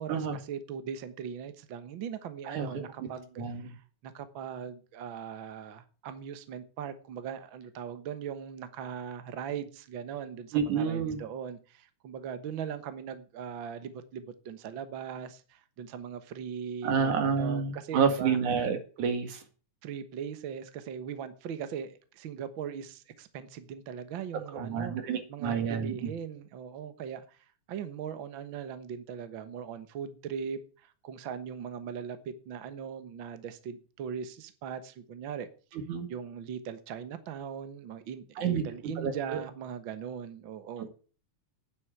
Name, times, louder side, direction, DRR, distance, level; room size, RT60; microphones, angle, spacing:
voice 1, 0.0-18.4 19.8-25.0 25.3-35.8 36.1-40.9, right 7 dB, 55° right, 11 dB, 1.5 m, -40 dB
voice 2, 2.5-2.8 3.4-3.7 10.5-11.2 16.8-19.4 24.5-25.9 35.9-36.1 38.4-38.6 39.0-39.4, right 6 dB, 75° right, 8 dB, 3.3 m, -29 dB
9.7 x 8.0 x 8.8 m, 0.38 s
omnidirectional pair, 3.5 m